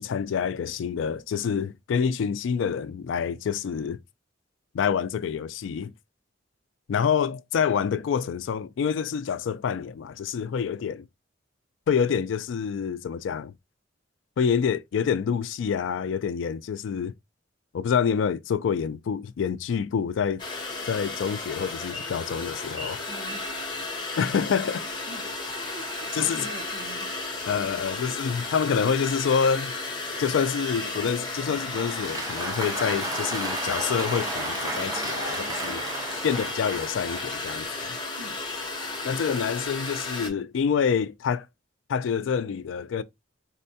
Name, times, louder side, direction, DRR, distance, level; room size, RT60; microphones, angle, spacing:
voice 1, 0.0-4.0 4.7-5.9 6.9-11.1 11.9-13.5 14.4-17.1 17.7-20.4 20.9-23.0 24.2-24.9 26.1-26.5 27.5-29.7 30.2-35.8 36.2-38.0 39.0-41.5 41.9-43.0, left 7 dB, 70° left, 0.3 m, -27 dB
sound 1, 20.4-40.3, left 3 dB, 25° left, 0.8 m, -34 dB
voice 2, 23.1-23.8 25.1-25.2 25.7-27.1 38.2-38.4, right 2 dB, 70° right, 0.8 m, -44 dB
Applause, 31.2-37.4, right 2 dB, 20° right, 0.6 m, -34 dB
4.3 x 2.2 x 2.7 m
head